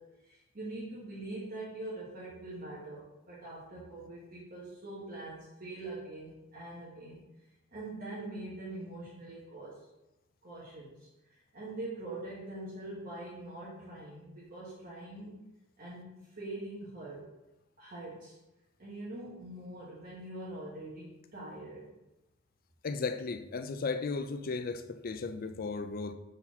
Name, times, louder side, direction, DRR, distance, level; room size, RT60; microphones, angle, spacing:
voice 1, 0.0-7.2 7.7-9.9 10.4-15.4 15.8-17.3 17.8-18.4 18.8-21.9, right 2 dB, 45° right, 1.2 m, -43 dB
voice 2, 22.8-26.1, left 4 dB, 45° left, 0.4 m, -35 dB
4.4 x 4.0 x 5.6 m
head